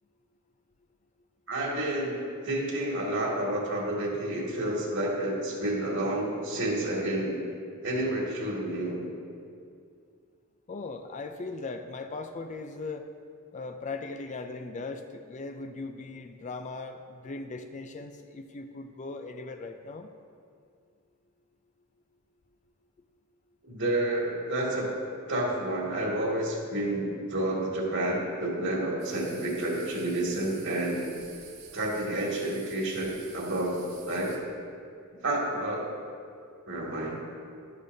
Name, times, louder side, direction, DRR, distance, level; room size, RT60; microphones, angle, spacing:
voice 1, 1.5-7.4 7.8-9.0 23.6-25.0 25.3-31.0 31.7-34.4 35.1-35.9 36.7-37.2, right 1 dB, 60° right, -3 dB, 2.3 m, -30 dB
voice 2, 10.7-13.1 13.5-20.1, left 3 dB, 35° left, 6 dB, 0.4 m, -39 dB
sound 1, 29.0-34.4, right 6 dB, 85° right, 1.6 m, -50 dB
12.0 x 11.5 x 2.7 m, 2.3 s
head